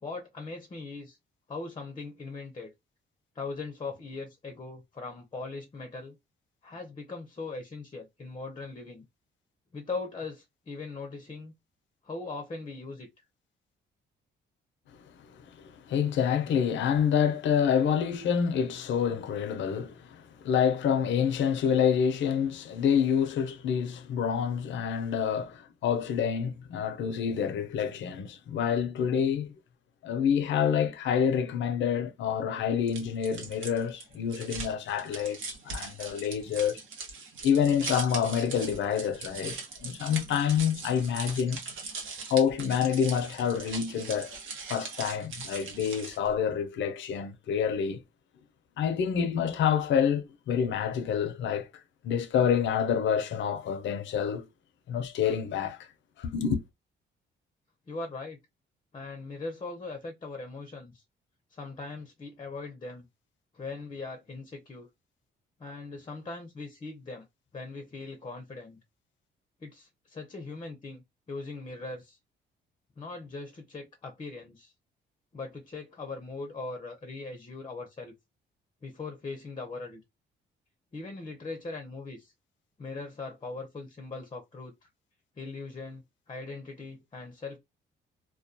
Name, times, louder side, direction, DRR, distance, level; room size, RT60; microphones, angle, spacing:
voice 1, 0.0-1.2 1.5-2.7 3.3-6.2 6.6-9.0 9.7-11.5 12.0-13.1 57.9-58.4 58.9-61.0 61.5-63.0 63.5-64.9 65.6-67.3 67.5-68.8 69.6-72.2 73.0-74.7 75.3-78.1 78.8-80.0 80.9-82.3 82.8-84.9 85.4-87.6, left 3 dB, 25° left, 0.6 m, -40 dB
voice 2, 15.6-29.5 30.0-36.8 37.4-41.6 42.3-44.4 44.7-48.0 48.8-51.7 52.0-54.4 54.9-55.9 56.2-56.6, left 8 dB, 70° left, 0.5 m, -27 dB
sound 1, 32.9-46.3, right 4 dB, 80° right, 0.9 m, -40 dB
2.2 x 2.2 x 2.5 m
cardioid pair, 90°, 20 cm